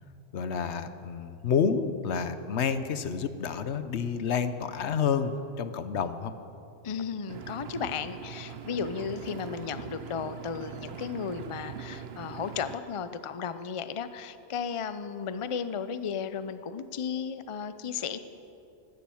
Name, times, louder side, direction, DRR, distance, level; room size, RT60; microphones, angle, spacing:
voice 1, 0.3-6.3, left 6 dB, 85° left, 11 dB, 1.1 m, -29 dB
voice 2, 6.8-18.2, left 6 dB, 35° left, 12 dB, 0.6 m, -34 dB
Engine, 7.3-12.8, right 7 dB, 70° right, 1.0 m, -42 dB
17.0 x 12.0 x 7.1 m, 2.7 s
omnidirectional pair, 1.1 m